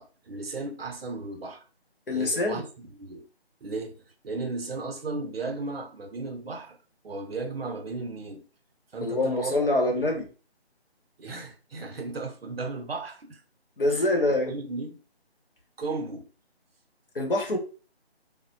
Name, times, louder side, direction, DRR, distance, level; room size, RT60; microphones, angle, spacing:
voice 1, 0.0-1.6 2.1-2.6 3.0-3.3 3.6-6.8 7.0-8.4 8.9-9.6 10.0-10.1 11.2-13.4 13.8-15.0 15.8-16.3, right 3 dB, 65° right, 0.7 m, -35 dB
voice 2, 2.1-2.6 9.0-10.2 13.8-14.5 17.1-17.6, left 2 dB, 55° left, 0.9 m, -25 dB
3.3 x 2.1 x 2.7 m
figure-of-eight pair, 175°, 32 cm